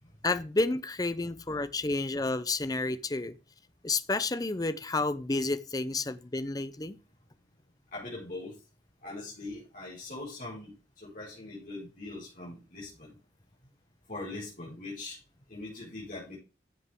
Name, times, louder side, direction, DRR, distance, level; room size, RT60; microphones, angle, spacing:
voice 1, 0.2-3.3 3.8-7.0, left 3 dB, 20° left, 0.7 m, -30 dB
voice 2, 7.9-8.6 9.0-13.2 14.1-15.2 15.5-16.4, left 2 dB, 50° left, 5.3 m, -41 dB
14.0 x 7.8 x 3.7 m
head